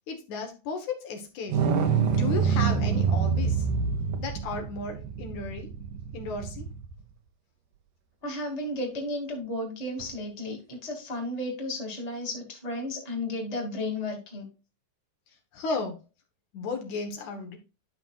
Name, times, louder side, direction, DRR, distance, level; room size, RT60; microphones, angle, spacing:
voice 1, 0.1-1.6 2.1-3.7 4.2-5.7 6.1-6.7 15.5-16.0 16.5-17.6, left 4 dB, 70° left, 3 dB, 2.6 m, -34 dB
sound 1, 1.5-6.9 10.0-10.1, right 6 dB, 80° right, 2.6 m, -26 dB
voice 2, 8.2-14.5, left 1 dB, 15° left, 0 dB, 2.0 m, -33 dB
12.0 x 6.0 x 2.4 m, 0.30 s
omnidirectional pair, 3.6 m